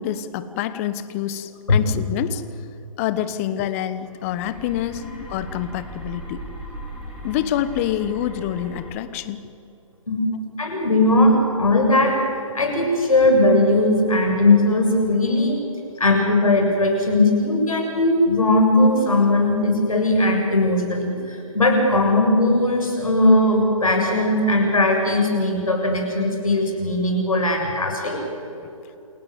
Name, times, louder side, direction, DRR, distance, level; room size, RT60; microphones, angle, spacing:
voice 1, 0.0-2.4 3.0-6.4 7.2-9.4, left 11 dB, 25° left, 13 dB, 1.1 m, -27 dB
sound 1, 4.0-8.9, right 1 dB, 5° right, 5.0 m, -38 dB
voice 2, 10.6-12.2 12.5-15.6 16.0-28.2, left 2 dB, 75° left, 2 dB, 7.3 m, -19 dB
28.5 x 17.5 x 8.1 m, 2.8 s
figure-of-eight pair, 140°, 18 cm